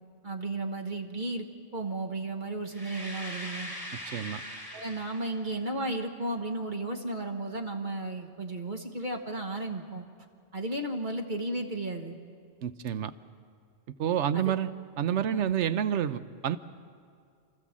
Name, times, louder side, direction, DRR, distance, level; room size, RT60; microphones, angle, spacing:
voice 1, 0.2-1.5 1.7-3.7 4.7-10.1 10.5-12.2 14.3-14.5 15.3-15.5, right 2 dB, 40° right, 3 dB, 1.5 m, -34 dB
sound 1, 2.7-5.5, left 1 dB, 20° right, 3.8 m, -41 dB
voice 2, 4.1-4.4 12.6-13.1 14.0-14.7 15.0-16.6, right 9 dB, 70° right, 13 dB, 1.0 m, -29 dB
28.0 x 14.0 x 7.4 m, 2.2 s
omnidirectional pair, 1.2 m